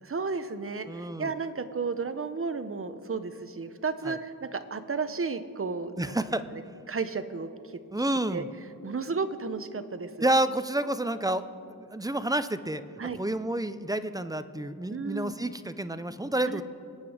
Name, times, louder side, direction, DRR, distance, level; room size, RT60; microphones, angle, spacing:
voice 1, 0.0-6.1 6.5-6.6 6.9-7.5 8.3-8.4 8.8-10.3 13.0-13.2 14.9-15.3 16.4-16.6, right 4 dB, 35° right, 10 dB, 0.8 m, -33 dB
voice 2, 0.9-1.3 4.1-4.2 6.0-6.4 7.9-8.5 10.2-11.5 11.8-12.8 13.2-16.6, right 1 dB, 10° right, 12 dB, 0.5 m, -29 dB
24.5 x 9.0 x 4.9 m, 2.5 s
wide cardioid pair, 110°, 36 cm